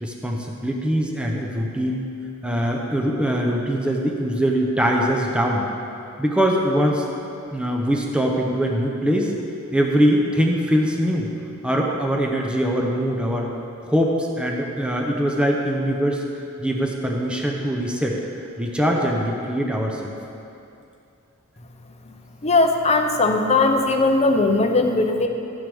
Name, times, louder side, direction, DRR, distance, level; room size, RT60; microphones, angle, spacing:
voice 1, 0.0-2.1 2.4-5.7 6.2-7.0 7.5-9.3 9.7-11.3 11.6-13.5 13.9-16.2 16.6-18.2 18.6-20.1, equal, 5° right, 0 dB, 0.7 m, -22 dB
voice 2, 22.4-25.3, left 3 dB, 30° left, 4 dB, 0.7 m, -19 dB
13.0 x 9.3 x 3.5 m, 2.7 s
head